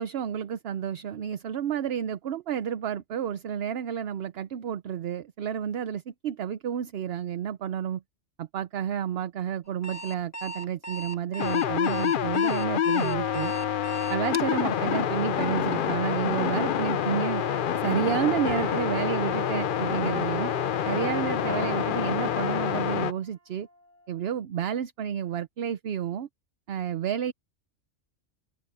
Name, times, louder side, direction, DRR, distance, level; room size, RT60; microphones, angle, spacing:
voice 1, 0.0-8.0 8.4-13.5 14.1-17.4 17.8-20.5 20.8-23.7 24.1-26.3 26.7-27.3, right 9 dB, 55° right, 0.8 m, -30 dB
Alarm, 9.7-14.5, right 2 dB, 10° left, 1.9 m, -38 dB
sound 1, 11.4-23.1, left 9 dB, 55° left, 0.6 m, -27 dB
sound 2, 18.5-20.1 21.5-23.2 23.8-24.0, right 3 dB, 85° right, 4.4 m, -42 dB
omnidirectional pair, 1.4 m